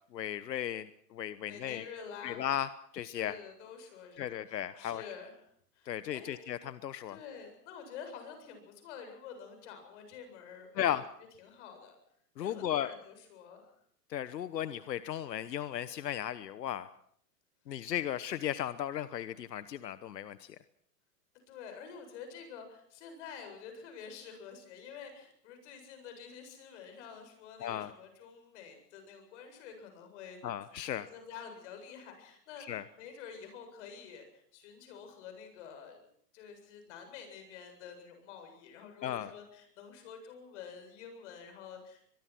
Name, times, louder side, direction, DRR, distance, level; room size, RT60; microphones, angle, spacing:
voice 1, 0.1-1.9 2.2-2.7 2.9-3.3 4.2-5.0 5.9-7.2 10.8-11.0 12.4-12.9 14.1-16.9 17.7-20.6 27.6-27.9 30.4-31.1 32.7-32.8 39.0-39.3, left 11 dB, 90° left, 14 dB, 1.2 m, -35 dB
voice 2, 1.5-2.4 3.1-5.3 5.7-6.4 7.1-11.0 11.4-12.0 12.4-13.7 21.5-30.4 30.9-36.1 36.3-42.0, left 6 dB, 45° left, 6 dB, 7.7 m, -48 dB
23.5 x 22.0 x 6.1 m, 0.67 s
hypercardioid pair, 155°, 48 cm